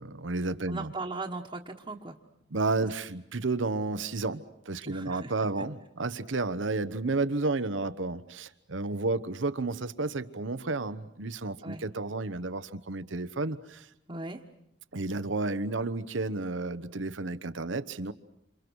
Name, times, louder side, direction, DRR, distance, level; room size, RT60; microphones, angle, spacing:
voice 1, 0.0-0.9 2.5-13.9 14.9-18.1, right 3 dB, 90° right, 13 dB, 1.0 m, -32 dB
voice 2, 0.7-2.2 2.8-2.9 4.8-5.5 11.6-11.8 14.1-14.4, right 3 dB, 30° right, -1 dB, 1.3 m, -38 dB
28.0 x 28.0 x 6.3 m, 0.80 s
head